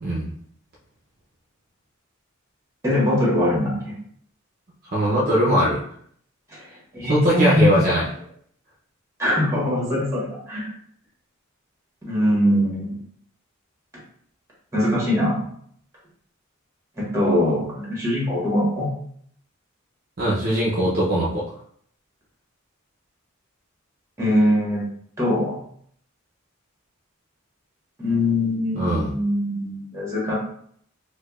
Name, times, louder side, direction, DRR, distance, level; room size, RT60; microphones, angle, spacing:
voice 1, 2.8-3.7 6.5-6.6 6.9-7.9 9.2-10.7 12.0-12.9 14.7-15.4 17.0-18.9 24.2-24.8 25.2-25.5 28.0-30.3, left 1 dB, 15° right, -6 dB, 1.4 m, -22 dB
voice 2, 4.9-5.8 7.1-8.1 20.2-21.4 28.7-29.1, equal, 45° right, -6 dB, 0.7 m, -20 dB
4.8 x 2.2 x 2.4 m, 0.64 s
head